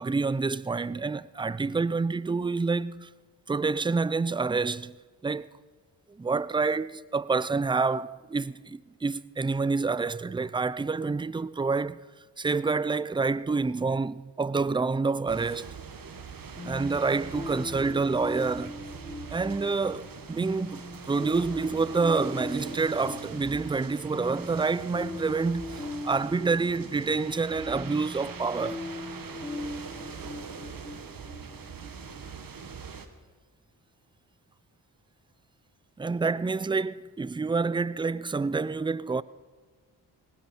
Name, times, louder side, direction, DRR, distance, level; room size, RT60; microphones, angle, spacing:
voice 1, 0.0-3.1 3.5-5.0 5.2-5.5 6.1-12.1 12.4-15.7 16.7-18.8 19.3-28.8 36.0-39.2, right 4 dB, 10° right, 0.4 m, -28 dB
sound 1, 15.3-33.1, right 5 dB, 50° right, 1.5 m, -43 dB
sound 2, 16.6-32.1, left 2 dB, 15° left, 3.6 m, -40 dB
19.0 x 16.5 x 4.4 m
supercardioid pair, 50°, 43 cm